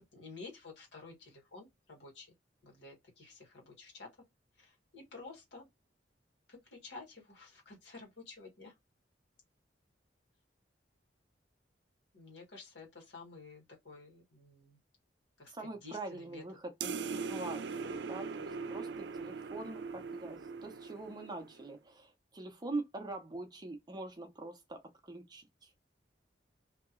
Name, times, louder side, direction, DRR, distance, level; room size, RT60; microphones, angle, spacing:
voice 1, 0.0-2.3 2.6-4.1 4.6-5.7 6.5-8.7 12.1-14.8 15.4-15.5 15.8-16.4, left 3 dB, 80° left, 1.5 m, -51 dB
voice 2, 15.5-25.7, right 2 dB, 25° right, 0.7 m, -44 dB
sound 1, 16.8-21.7, right 5 dB, 70° right, 0.4 m, -40 dB
2.9 x 2.8 x 2.5 m
head